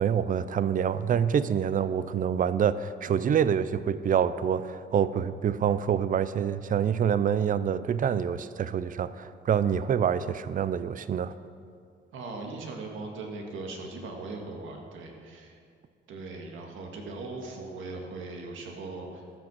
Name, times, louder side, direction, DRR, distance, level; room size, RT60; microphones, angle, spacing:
voice 1, 0.0-11.3, right 8 dB, 45° right, 15 dB, 0.5 m, -26 dB
voice 2, 12.1-15.6 16.1-19.4, right 3 dB, 80° right, 2 dB, 1.8 m, -39 dB
14.0 x 6.1 x 6.2 m, 2.3 s
cardioid pair, 90°, 20 cm